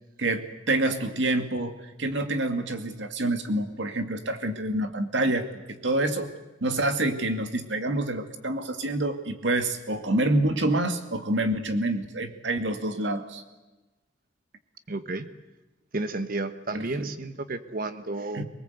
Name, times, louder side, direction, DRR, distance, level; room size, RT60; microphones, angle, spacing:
voice 1, 0.2-1.7 2.0-6.3 6.6-13.4 16.7-17.1 18.3-18.4, right 1 dB, 80° right, 7 dB, 2.2 m, -27 dB
voice 2, 14.9-15.3 15.9-18.4, right 2 dB, 50° right, 10 dB, 1.3 m, -32 dB
23.5 x 20.0 x 8.1 m, 1.1 s
head